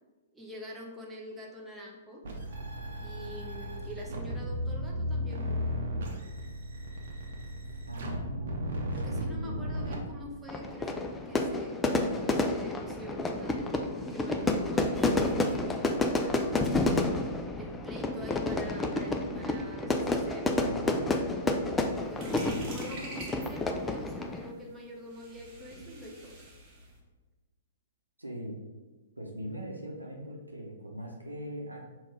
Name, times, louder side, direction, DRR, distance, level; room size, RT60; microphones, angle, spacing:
voice 1, 0.3-2.2 3.0-5.6 8.9-15.8 17.6-20.7 21.9-26.3, equal, 10° right, -2 dB, 0.7 m, -45 dB
sound 1, 2.2-10.0, equal, 55° right, 0.7 m, -35 dB
voice 2, 7.9-10.0 20.6-21.1 22.3-22.6 28.2-28.6 29.2-31.8, equal, 85° right, 0 dB, 0.8 m, -40 dB
Fire / Fireworks, 10.5-24.5, left 2 dB, 10° left, 0.3 m, -30 dB
sound 2, 21.9-27.0, right 1 dB, 30° right, 1.0 m, -46 dB
3.9 x 2.3 x 4.5 m, 1.3 s
figure-of-eight pair, 110°, 0 cm